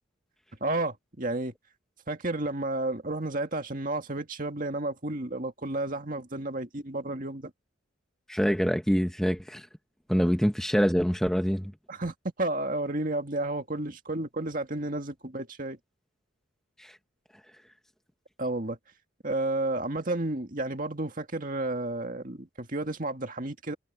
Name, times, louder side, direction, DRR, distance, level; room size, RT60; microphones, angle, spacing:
voice 1, 0.6-1.5 2.1-7.5 11.9-15.8 18.4-18.8 19.2-23.7, right 2 dB, 40° right, 2.1 m, -31 dB
voice 2, 8.3-9.7 10.1-11.7 16.8-17.0, equal, ahead, 1.1 m, -25 dB
head